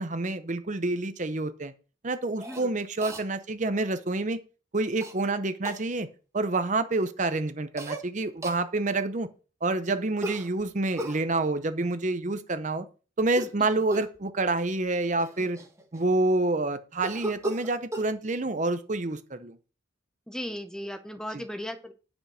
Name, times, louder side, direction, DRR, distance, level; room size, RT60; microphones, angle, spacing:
voice 1, 0.0-1.7 2.0-4.4 4.7-6.1 6.3-9.3 9.6-12.9 13.2-15.6 15.9-19.6 21.3-21.4, right 2 dB, 40° right, 11 dB, 0.7 m, -28 dB
Cough, 2.4-2.6 3.0-3.2 5.0-5.1 5.6-5.8 7.8-8.0 8.4-8.6 10.2-11.2 13.2-13.6 13.9-14.2 14.9-15.0 15.2-16.2 17.0-18.1, right 1 dB, 15° right, 1.3 m, -36 dB
voice 2, 20.3-21.9, equal, 5° left, 8 dB, 0.9 m, -36 dB
10.0 x 5.2 x 6.4 m, 0.35 s
head